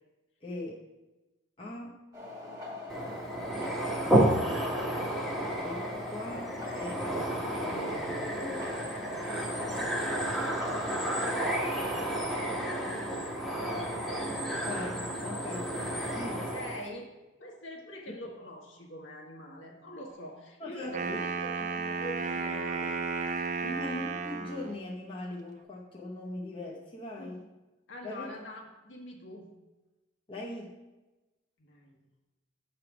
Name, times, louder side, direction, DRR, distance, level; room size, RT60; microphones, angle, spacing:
voice 1, 0.4-0.8 1.6-2.1 3.5-3.7 5.6-7.1 7.5-8.9 10.0-10.3 14.6-15.7 16.1-16.5 18.1-18.2 20.6-21.2 23.6-27.4 28.0-28.3 30.3-30.8, left 1 dB, 25° left, -3 dB, 0.7 m, -40 dB
sound 1, 2.1-11.0, left 2 dB, 20° right, 1.2 m, -42 dB
sound 2, 2.9-16.9, right 1 dB, ahead, 0.9 m, -31 dB
voice 2, 16.4-17.1 17.4-22.9 23.4-23.7 27.2-27.4 27.9-29.5 31.6-32.0, equal, 75° left, 0 dB, 1.3 m, -44 dB
Wind instrument woodwind instrument, 20.8-24.8, right 4 dB, 40° right, 0.5 m, -33 dB
8.2 x 3.4 x 5.9 m, 1.1 s
head